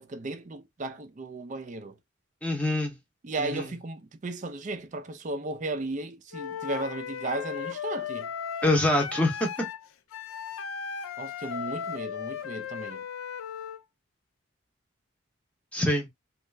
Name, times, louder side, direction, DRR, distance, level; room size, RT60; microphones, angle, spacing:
voice 1, 0.0-2.0 3.2-8.3 11.2-13.1, right 2 dB, 35° right, 0.4 m, -35 dB
voice 2, 2.4-3.0 3.4-3.7 8.6-9.5 15.7-16.1, left 1 dB, 5° left, 0.7 m, -25 dB
Wind instrument woodwind instrument, 6.3-13.8, left 7 dB, 80° left, 0.4 m, -36 dB
3.2 x 2.4 x 3.2 m
head